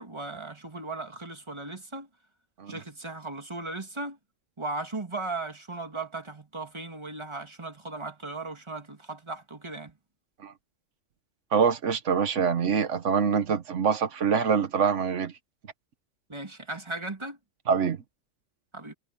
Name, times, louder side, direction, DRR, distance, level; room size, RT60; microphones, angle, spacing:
voice 1, 0.0-2.1 2.7-4.2 4.6-9.9 16.3-17.4 18.7-18.9, right 2 dB, 25° right, 2.2 m, -37 dB
voice 2, 11.5-15.3 17.7-18.0, right 6 dB, 80° right, 1.4 m, -25 dB
omnidirectional pair, 1.2 m